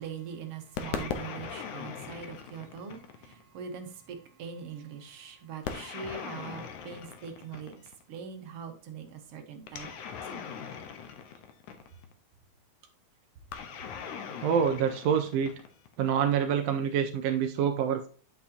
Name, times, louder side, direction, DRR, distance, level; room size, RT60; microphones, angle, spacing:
voice 1, 0.0-3.0 3.5-7.7 8.1-9.9 10.3-10.4, right 6 dB, 60° right, 4 dB, 1.9 m, -42 dB
sound 1, 0.8-3.4 5.6-8.0 9.7-12.1 13.5-15.9, left 7 dB, 85° left, 2.4 m, -40 dB
voice 2, 14.4-15.5 16.0-18.1, right 7 dB, 80° right, 6 dB, 1.5 m, -26 dB
8.2 x 6.7 x 2.8 m, 0.40 s
omnidirectional pair, 3.4 m